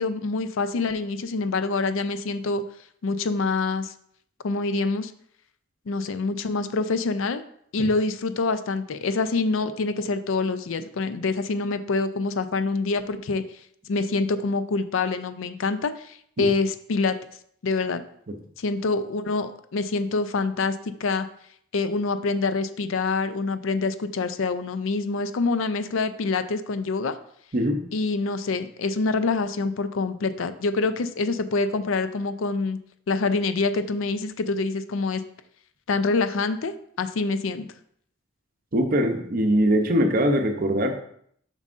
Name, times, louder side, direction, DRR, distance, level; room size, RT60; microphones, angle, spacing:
voice 1, 0.0-2.6 3.0-3.9 4.4-5.1 5.9-7.4 7.7-13.4 13.9-17.2 17.6-18.0 18.6-21.3 21.7-27.2 27.9-32.8 33.1-35.2 35.9-37.7, left 3 dB, 70° left, 11 dB, 0.4 m, -26 dB
voice 2, 38.7-41.0, equal, 45° right, 6 dB, 0.7 m, -22 dB
7.2 x 5.3 x 2.5 m, 0.66 s
head